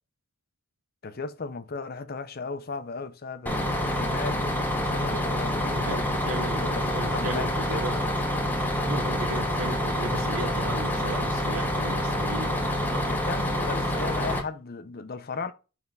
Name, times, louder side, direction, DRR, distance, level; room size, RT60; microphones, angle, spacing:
voice 1, 1.0-6.0 6.6-7.8 13.0-15.5, left 4 dB, 45° left, 0.6 m, -36 dB
Bus, 3.5-14.4, left 1 dB, 10° left, 1.1 m, -27 dB
voice 2, 5.7-8.1 8.9-12.6 12.9-13.1, right 2 dB, 75° right, 0.9 m, -35 dB
5.7 x 3.5 x 5.2 m
head